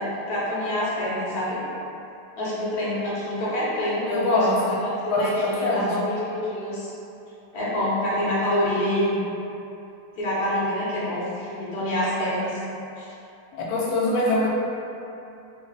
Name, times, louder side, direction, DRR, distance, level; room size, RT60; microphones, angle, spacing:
voice 1, 0.0-1.6 2.3-4.4 4.8-6.9 7.5-9.2 10.1-12.6 13.0-13.1, left 1 dB, 50° left, -9 dB, 0.6 m, -26 dB
voice 2, 4.1-4.8 5.1-5.9 13.5-14.5, left 1 dB, 80° left, -4 dB, 1.4 m, -23 dB
3.4 x 2.1 x 3.9 m, 2.8 s
omnidirectional pair, 2.3 m